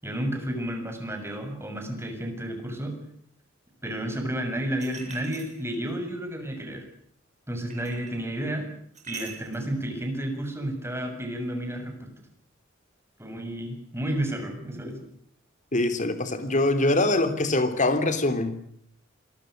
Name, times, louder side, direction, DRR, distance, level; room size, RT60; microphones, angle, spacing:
voice 1, 0.0-3.0 3.8-6.8 7.5-8.7 9.1-12.3 13.2-15.0, right 1 dB, 15° right, 5 dB, 7.2 m, -31 dB
sound 1, 4.8-6.0 7.7-8.2 8.9-9.7, right 5 dB, 35° right, 7.6 m, -42 dB
voice 2, 15.7-18.6, left 2 dB, 40° left, 9 dB, 3.3 m, -23 dB
28.0 x 23.5 x 6.6 m, 0.65 s
head